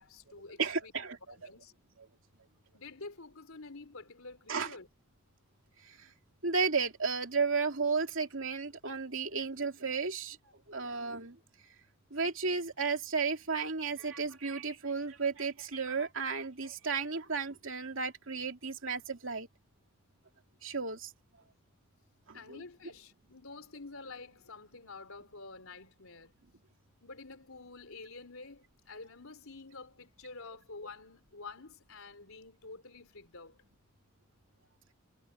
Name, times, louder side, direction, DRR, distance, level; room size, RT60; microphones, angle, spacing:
voice 1, 0.0-0.9 1.3-1.7 2.7-4.9 22.3-26.3 27.0-33.6, left 3 dB, 70° left, 3.4 m, -49 dB
voice 2, 0.6-1.5 4.5-4.7 5.9-6.0 6.4-10.4 10.7-11.4 12.1-19.5 20.6-21.1 22.3-22.6, right 4 dB, 60° right, 2.8 m, -33 dB
head